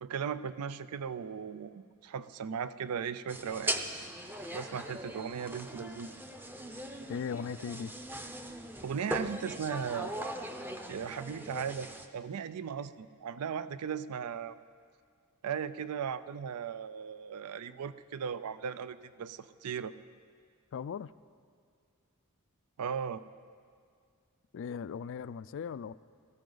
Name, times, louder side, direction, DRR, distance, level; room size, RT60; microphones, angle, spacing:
voice 1, 0.0-3.8 4.5-6.1 8.8-10.1 10.9-14.6 15.4-19.9 22.8-23.2, right 7 dB, 80° right, 15 dB, 0.4 m, -37 dB
sound 1, 3.3-12.1, right 1 dB, 10° right, 0.6 m, -40 dB
voice 2, 7.1-7.9 20.7-21.1 24.5-25.9, left 6 dB, 60° left, 17 dB, 0.3 m, -38 dB
19.5 x 14.5 x 3.9 m, 2.1 s
head